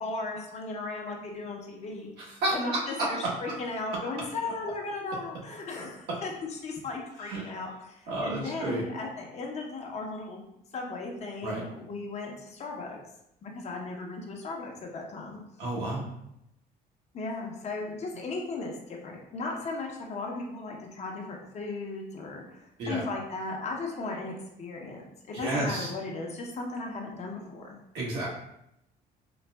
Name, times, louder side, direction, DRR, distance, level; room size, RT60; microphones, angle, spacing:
voice 1, 0.0-10.4 10.7-13.0 13.4-15.4 17.1-27.7, left 3 dB, 40° left, 0 dB, 0.7 m, -36 dB
voice 2, 2.4-3.1 7.3-7.4 8.1-8.8 11.4-11.6 15.6-16.1 22.8-23.0 25.3-25.9 27.9-28.3, right 2 dB, 80° right, -5 dB, 1.2 m, -30 dB
4.0 x 2.5 x 2.2 m, 0.81 s
cardioid pair, 110°, 17 cm